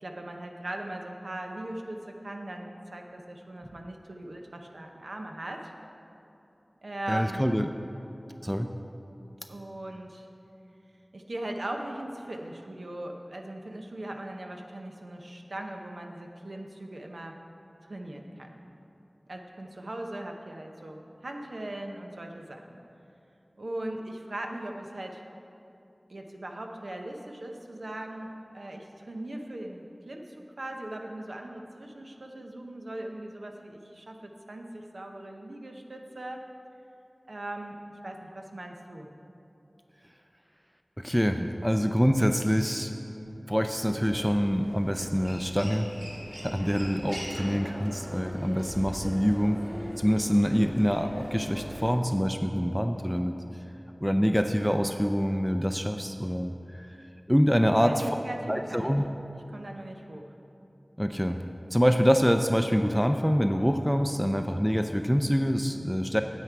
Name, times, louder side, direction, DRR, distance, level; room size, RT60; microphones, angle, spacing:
voice 1, 0.0-5.7 6.8-7.4 9.5-10.3 11.1-17.4 17.8-18.6 19.3-22.6 23.6-25.2 26.1-36.4 37.3-37.8 38.0-39.1 57.8-58.9 59.5-60.3, right 1 dB, 90° right, 2 dB, 0.8 m, -39 dB
voice 2, 7.1-7.7 8.4-8.7 41.0-42.9 43.5-45.9 46.4-49.6 50.0-53.3 54.0-57.0 57.3-58.1 58.5-59.1 61.0-61.4 61.7-66.2, equal, ahead, 6 dB, 0.4 m, -25 dB
Human voice, 43.9-51.9, equal, 30° right, 2.1 m, -40 dB
9.5 x 8.3 x 4.6 m, 2.8 s
wide cardioid pair, 50°, 0 cm